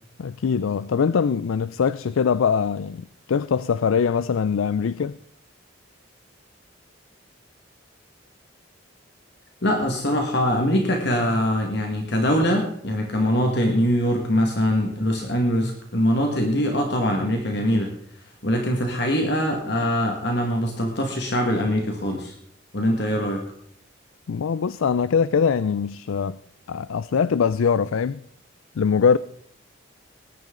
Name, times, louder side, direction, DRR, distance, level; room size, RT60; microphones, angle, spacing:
voice 1, 0.2-5.2 24.3-26.4 26.7-28.2 28.8-29.2, left 6 dB, 80° left, 0.4 m, -22 dB
voice 2, 9.6-17.9 18.4-22.4 22.7-23.4, equal, 55° left, 1.8 m, -23 dB
19.5 x 10.5 x 3.8 m
head